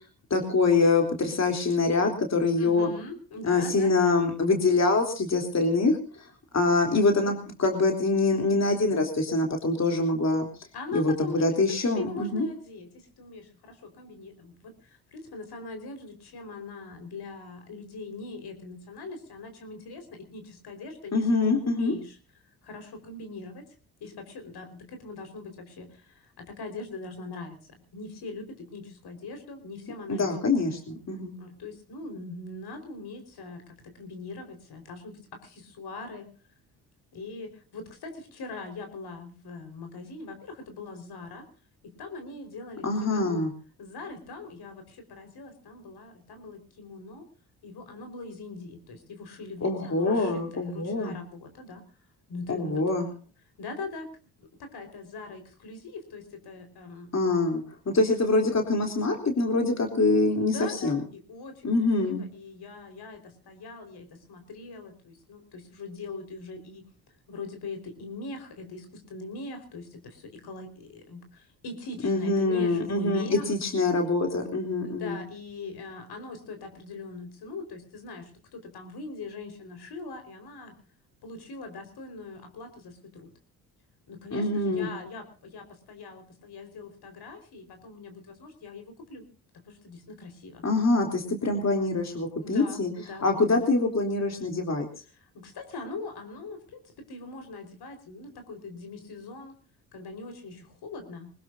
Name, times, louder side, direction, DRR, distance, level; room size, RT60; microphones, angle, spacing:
voice 1, 0.3-2.9 3.4-6.3 6.5-10.5 10.9-12.5 21.1-21.9 30.1-31.3 42.8-43.5 49.6-51.2 52.5-53.1 57.1-61.0 61.6-62.3 72.0-75.2 84.3-84.9 90.6-92.9 93.2-94.9, left 3 dB, 40° left, 3 dB, 3.4 m, -25 dB
voice 2, 2.6-4.1 10.7-22.2 22.4-23.7 24.0-30.5 31.4-36.3 37.1-41.4 41.8-43.4 43.8-47.3 47.6-51.8 52.3-52.8 53.6-54.1 54.4-57.1 60.4-61.0 61.3-61.7 62.0-66.9 67.3-73.5 74.8-80.7 81.2-83.3 84.1-89.3 89.6-90.6 92.4-93.3 95.2-99.5 99.9-101.3, left 3 dB, 65° left, 6 dB, 4.8 m, -41 dB
22.0 x 20.0 x 2.7 m, 0.36 s
supercardioid pair, 55°, 42 cm